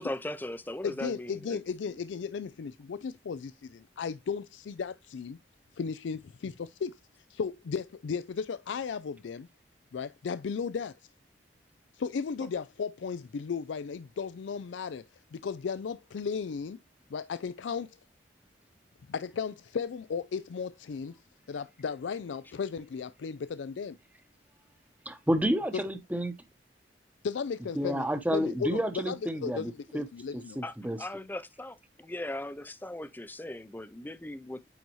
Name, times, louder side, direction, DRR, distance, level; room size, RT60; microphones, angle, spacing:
voice 1, 0.0-1.6 12.4-12.5 30.6-34.7, left 1 dB, 10° left, 0.5 m, -39 dB
voice 2, 0.8-5.4 5.8-7.0 7.3-9.5 9.9-11.0 12.0-15.1 15.3-16.8 17.1-17.9 19.1-21.2 21.5-24.0 25.7-25.8 27.2-30.6, left 6 dB, 85° left, 0.4 m, -35 dB
voice 3, 25.1-26.3 27.8-30.1 30.6-31.0, equal, 10° right, 0.8 m, -30 dB
9.2 x 4.1 x 3.0 m
head